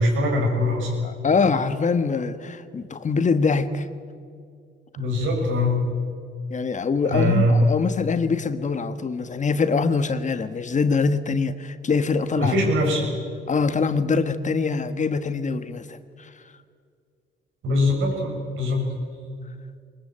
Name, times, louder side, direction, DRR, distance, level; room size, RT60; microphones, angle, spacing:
voice 1, 0.0-0.9 5.0-5.8 7.0-7.5 12.4-13.1 17.6-18.9, left 1 dB, 85° right, 0 dB, 7.7 m, -22 dB
voice 2, 1.0-3.9 6.5-12.5 13.5-16.3, left 4 dB, 40° left, 11 dB, 1.4 m, -24 dB
22.5 x 21.0 x 8.9 m, 2.2 s
cardioid pair, 90°, 20 cm